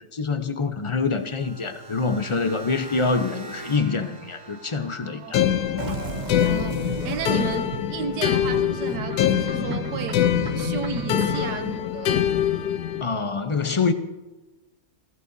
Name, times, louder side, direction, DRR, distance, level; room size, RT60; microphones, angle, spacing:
voice 1, 0.1-5.5 13.0-13.9, left 4 dB, 35° left, 0.5 m, -25 dB
sound 1, 0.8-5.9, right 3 dB, 55° right, 1.5 m, -42 dB
voice 2, 5.0-5.4 6.4-10.3 10.5-12.3, right 7 dB, 90° right, 1.4 m, -33 dB
sound 2, 5.3-13.0, left 10 dB, 75° left, 1.2 m, -24 dB
sound 3, 5.8-11.6, right 6 dB, 40° right, 0.6 m, -34 dB
27.5 x 15.5 x 2.7 m
omnidirectional pair, 1.7 m